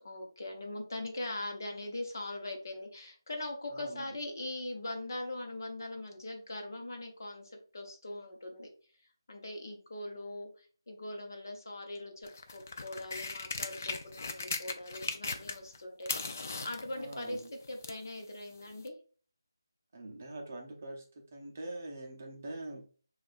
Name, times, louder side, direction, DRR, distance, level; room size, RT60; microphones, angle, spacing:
voice 1, 0.0-8.7 9.3-17.4 17.7-18.9, left 1 dB, 50° left, 3 dB, 0.9 m, -41 dB
voice 2, 3.7-4.2 17.0-17.5 19.9-23.0, right 2 dB, 30° right, 1 dB, 0.7 m, -44 dB
sound 1, 12.2-15.8 16.0-18.1 18.9-19.0, left 4 dB, 35° left, 0.3 m, -38 dB
6.2 x 2.4 x 2.5 m, 0.41 s
figure-of-eight pair, 175°, 2 cm